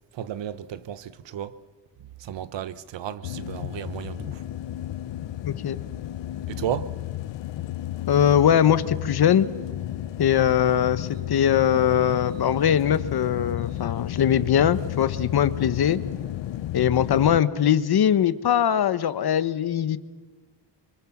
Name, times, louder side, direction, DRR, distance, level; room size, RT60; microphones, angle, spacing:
voice 1, 0.2-1.5 2.3-4.4 6.5-6.9, right 10 dB, 75° right, 1.1 m, -33 dB
sound 1, 3.2-17.4, left 13 dB, 75° left, 0.8 m, -33 dB
voice 2, 5.4-5.8 8.1-9.5 10.2-16.0 16.7-20.0, left 9 dB, 55° left, 1.1 m, -21 dB
25.5 x 23.5 x 7.2 m
wide cardioid pair, 135°, 44 cm